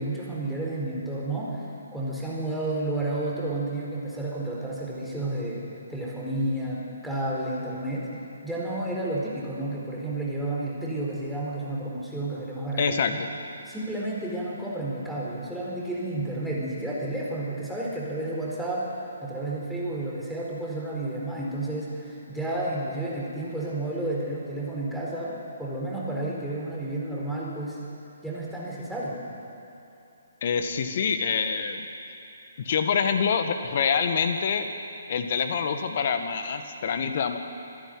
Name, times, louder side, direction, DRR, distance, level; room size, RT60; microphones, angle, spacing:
voice 1, 0.0-8.1 8.4-12.9 13.7-18.9 19.2-27.8 28.2-29.2, right 2 dB, ahead, -6 dB, 4.4 m, -31 dB
voice 2, 12.8-13.3 30.4-31.9 32.6-34.7 35.1-37.4, left 6 dB, 50° left, 7 dB, 1.8 m, -26 dB
26.5 x 10.5 x 9.5 m, 2.9 s
figure-of-eight pair, 135°, 0 cm